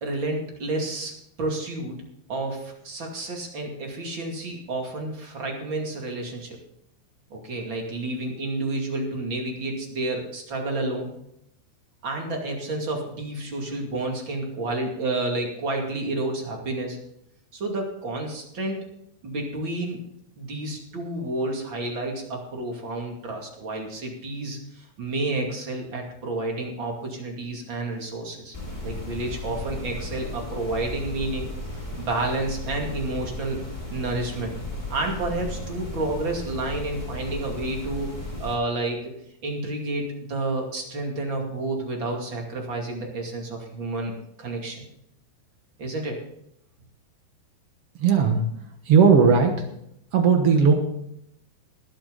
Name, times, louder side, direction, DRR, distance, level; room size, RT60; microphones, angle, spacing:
voice 1, 0.0-1.1 1.4-2.0 2.3-6.6 7.3-11.1 12.0-17.0 17.5-18.8 19.2-20.0 20.4-28.5 28.8-31.5 32.0-33.6 33.9-34.5 34.9-39.1 39.4-44.1 44.4-44.8 45.8-46.2, right 2 dB, 35° right, 1 dB, 2.6 m, -30 dB
sound 1, 28.5-38.5, left 1 dB, 10° left, 3.8 m, -35 dB
voice 2, 48.0-48.4 48.8-49.5 50.1-50.7, right 6 dB, 85° right, 4 dB, 1.3 m, -17 dB
20.0 x 8.8 x 3.9 m, 0.76 s
omnidirectional pair, 4.7 m